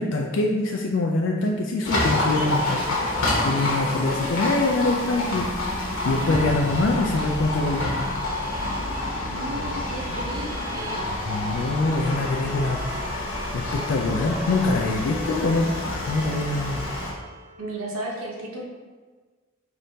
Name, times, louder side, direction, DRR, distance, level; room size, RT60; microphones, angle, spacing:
voice 1, 0.0-5.5 5.7-8.0 11.3-12.8 13.5-16.8, left 2 dB, 65° left, 1 dB, 0.3 m, -24 dB
Livestock farm animals working animals, 1.8-17.1, left 2 dB, 85° left, 1.0 m, -28 dB
Bowed string instrument, 1.8-17.6, left 2 dB, 15° right, 0.4 m, -42 dB
voice 2, 9.2-11.1 17.6-18.6, right 1 dB, 90° right, -1 dB, 0.8 m, -34 dB
3.9 x 3.5 x 2.7 m, 1.4 s
head